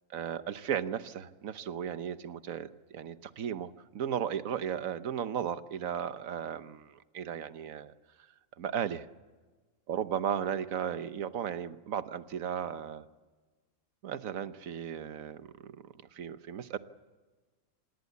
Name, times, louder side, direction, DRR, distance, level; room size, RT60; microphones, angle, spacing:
voice 1, 0.1-7.9 8.6-9.1 9.9-13.1 14.0-16.8, right 8 dB, 75° right, 13 dB, 1.3 m, -35 dB
26.5 x 20.0 x 8.4 m, 1.3 s
omnidirectional pair, 1.4 m